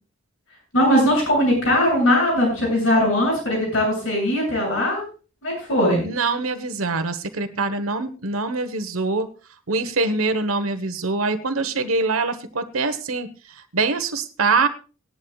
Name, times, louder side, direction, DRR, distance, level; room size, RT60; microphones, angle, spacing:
voice 1, 0.7-5.0 5.4-6.1, left 1 dB, 70° left, -2 dB, 7.8 m, -20 dB
voice 2, 6.0-9.3 9.7-14.7, right 3 dB, 85° right, 9 dB, 1.2 m, -24 dB
19.0 x 11.0 x 2.4 m, 0.35 s
head